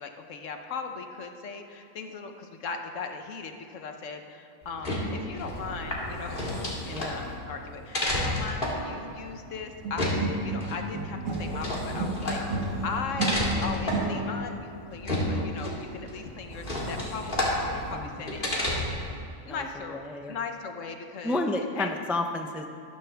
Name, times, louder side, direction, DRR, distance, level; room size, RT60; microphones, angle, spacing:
voice 1, 0.0-6.4 6.8-18.7 19.5-20.0 20.3-21.4 21.8-21.9, left 5 dB, 75° left, 5 dB, 1.3 m, -38 dB
sound 1, 4.6-19.1, left 1 dB, 40° left, 2.4 m, -31 dB
voice 2, 6.9-7.2 17.9-18.3 19.4-19.6 19.9-20.4 21.2-22.7, left 2 dB, ahead, 5 dB, 0.4 m, -31 dB
sound 2, 9.8-11.6 11.9-14.5, right 3 dB, 90° right, 1.9 m, -31 dB
13.0 x 13.0 x 3.4 m, 2.7 s
omnidirectional pair, 1.3 m